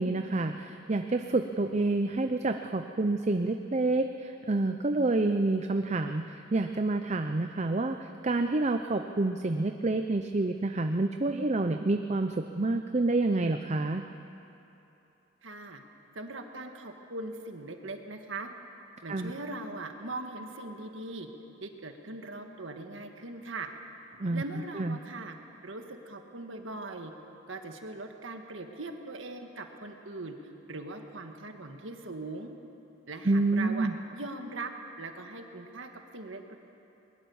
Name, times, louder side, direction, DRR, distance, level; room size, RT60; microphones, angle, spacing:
voice 1, 0.0-8.0 8.2-14.0 19.1-19.3 24.2-24.4 24.8-25.0 33.3-33.9, right 2 dB, 35° right, 6 dB, 0.6 m, -28 dB
voice 2, 15.4-15.8 16.1-18.5 19.0-21.3 21.6-23.7 24.3-25.4 25.6-27.1 27.5-30.3 30.7-32.5 33.1-34.7 35.0-36.6, right 2 dB, 75° right, 5 dB, 1.7 m, -40 dB
21.5 x 20.0 x 7.2 m, 2.9 s
head